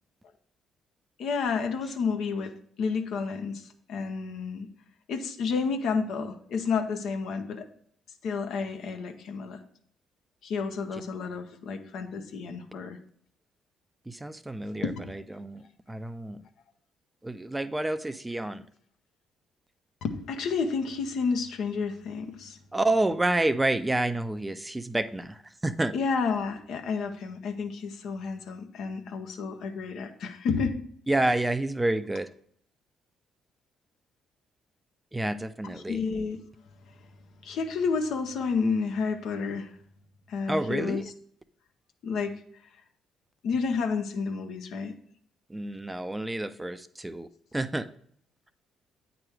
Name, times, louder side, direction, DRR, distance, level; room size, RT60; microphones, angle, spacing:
voice 1, 1.2-3.6 3.9-4.7 5.1-7.7 8.2-9.6 10.4-13.0 14.7-15.1 20.0-22.6 25.9-30.8 31.2-31.4 35.6-36.4 37.4-39.7 40.3-41.0 42.0-42.3 43.4-45.0, left 5 dB, 65° left, 6 dB, 0.7 m, -30 dB
voice 2, 14.1-16.4 17.2-18.6 22.7-25.9 31.1-32.3 35.1-36.0 40.5-41.1 45.5-47.9, right 2 dB, 15° right, 12 dB, 0.4 m, -29 dB
8.7 x 3.0 x 4.7 m, 0.63 s
hypercardioid pair, 50°, 0 cm